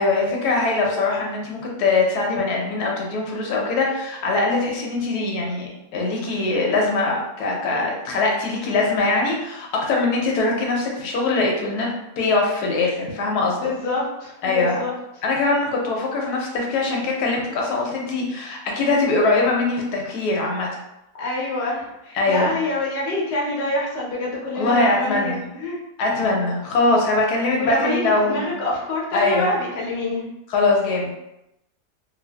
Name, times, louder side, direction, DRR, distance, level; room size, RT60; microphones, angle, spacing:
voice 1, 0.0-11.9 12.2-13.6 14.4-14.8 15.2-20.7 22.1-22.5 24.6-25.4 26.0-28.5 29.1-29.5 30.5-31.1, left 3 dB, 85° left, -1 dB, 1.1 m, -22 dB
voice 2, 13.4-14.9 21.2-25.8 27.6-30.2, left 2 dB, 50° left, -4 dB, 0.8 m, -26 dB
2.6 x 2.5 x 2.2 m, 0.88 s
omnidirectional pair, 1.7 m